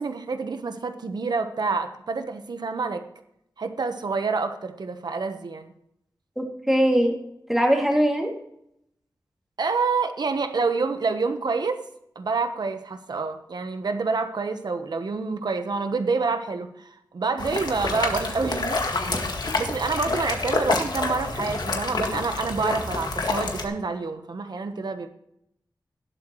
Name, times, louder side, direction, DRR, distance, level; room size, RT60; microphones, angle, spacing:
voice 1, 0.0-3.1 3.6-5.7 9.6-11.8 12.1-18.8 19.6-25.1, right 4 dB, 70° right, 8 dB, 1.1 m, -27 dB
voice 2, 6.4-7.2 7.5-8.3, equal, 5° right, 0 dB, 2.6 m, -21 dB
sound 1, 17.4-23.6, left 3 dB, 65° left, 1.8 m, -28 dB
19.0 x 8.0 x 3.1 m, 0.75 s
wide cardioid pair, 110°, 8 cm